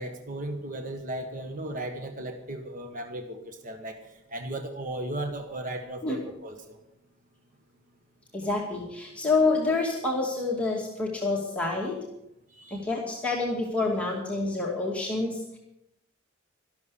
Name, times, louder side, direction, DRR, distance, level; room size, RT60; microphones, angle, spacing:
voice 1, 0.0-4.0 4.3-6.8 12.5-12.8, right 1 dB, 45° right, 5 dB, 1.4 m, -36 dB
voice 2, 8.3-12.0 12.7-15.6, left 3 dB, 5° left, -3 dB, 2.3 m, -28 dB
13.0 x 12.5 x 7.0 m, 0.83 s
head